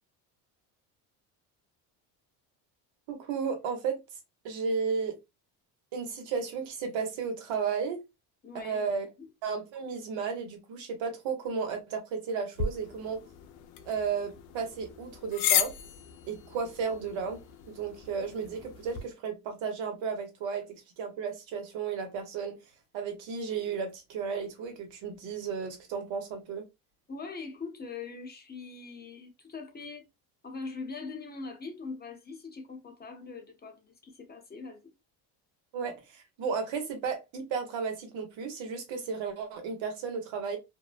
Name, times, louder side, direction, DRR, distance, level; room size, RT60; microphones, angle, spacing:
voice 1, 3.1-4.0 4.4-5.2 5.9-8.0 8.6-9.1 9.4-13.2 13.8-15.7 16.3-17.4 17.7-20.7 21.0-22.6 22.9-26.6 35.7-40.6, right 5 dB, 70° right, 1.1 m, -33 dB
voice 2, 8.4-8.9 27.1-30.0 30.4-34.9, left 4 dB, 20° left, 0.9 m, -42 dB
sound 1, 12.6-19.0, left 8 dB, 80° left, 0.6 m, -35 dB
2.5 x 2.1 x 2.4 m
supercardioid pair, 80°, 48 cm